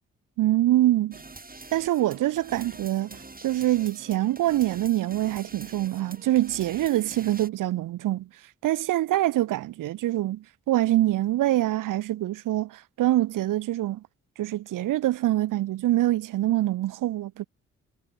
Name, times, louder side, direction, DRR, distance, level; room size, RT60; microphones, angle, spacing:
voice 1, 0.4-1.2 1.7-8.3 8.6-14.0 14.4-17.5, right 15 dB, 80° right, 0.8 m, -25 dB
sound 1, 1.1-7.5, right 3 dB, 25° right, 5.8 m, -45 dB
supercardioid pair, 50°, 32 cm